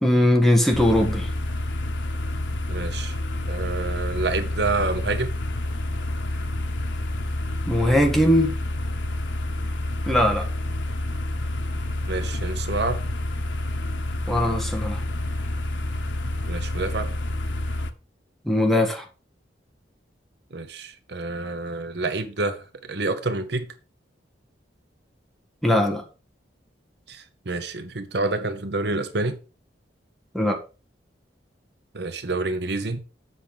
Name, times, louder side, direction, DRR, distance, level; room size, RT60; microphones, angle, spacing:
voice 1, 0.0-1.3 7.7-8.5 10.1-10.5 14.3-15.0 18.4-19.0 25.6-26.0 30.3-30.6, left 1 dB, ahead, 1.6 m, -20 dB
sound 1, 0.7-17.9, left 1 dB, 90° left, 1.0 m, -28 dB
voice 2, 2.7-3.2 3.5-5.3 12.1-13.1 16.5-17.1 20.5-23.7 27.1-29.4 31.9-33.0, right 3 dB, 65° right, 1.0 m, -28 dB
8.0 x 5.7 x 5.2 m
head